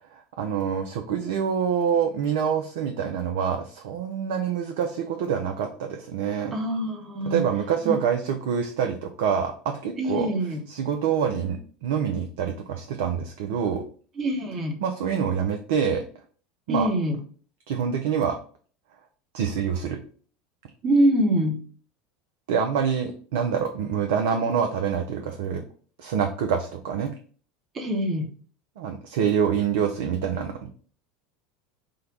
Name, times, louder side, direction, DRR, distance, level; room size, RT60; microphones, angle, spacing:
voice 1, 0.1-6.5 7.2-10.3 10.7-13.8 14.8-16.0 16.7-16.9 17.7-18.4 19.3-20.0 22.5-25.6 26.0-27.1 28.8-30.7, right 7 dB, 60° right, 4 dB, 0.4 m, -26 dB
voice 2, 6.5-7.4 7.8-8.0 10.0-10.6 14.2-14.8 16.7-17.1 20.8-21.6 27.7-28.3, right 1 dB, 30° right, 1 dB, 0.9 m, -24 dB
3.8 x 2.1 x 3.9 m, 0.44 s
figure-of-eight pair, 75°, 0 cm